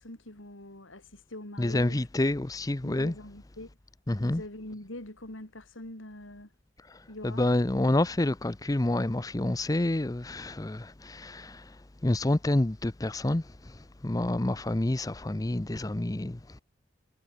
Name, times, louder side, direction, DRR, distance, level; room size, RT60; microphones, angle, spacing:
voice 1, 0.0-2.0 2.8-3.8 4.1-6.5 7.1-7.4, left 1 dB, 90° left, 4.0 m, -44 dB
voice 2, 1.6-3.1 4.1-4.4 6.8-16.6, left 1 dB, 20° left, 0.6 m, -28 dB
head